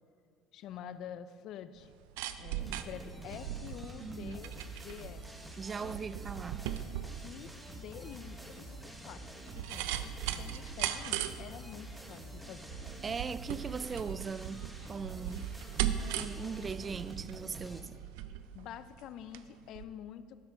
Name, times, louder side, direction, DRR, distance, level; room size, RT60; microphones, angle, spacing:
voice 1, 0.5-1.9 2.4-5.2 5.8-6.0 7.2-12.7 18.5-20.4, left 9 dB, 60° left, 0.5 m, -48 dB
sound 1, 1.8-19.5 19.8-19.9, right 11 dB, 85° right, 0.5 m, -39 dB
sound 2, 2.6-17.8, right 1 dB, 5° right, 1.2 m, -48 dB
voice 2, 4.0-4.4 5.6-6.7 13.0-15.5 16.1-18.0, right 5 dB, 25° right, 0.3 m, -39 dB
12.5 x 10.0 x 3.5 m
supercardioid pair, 110°, 0 cm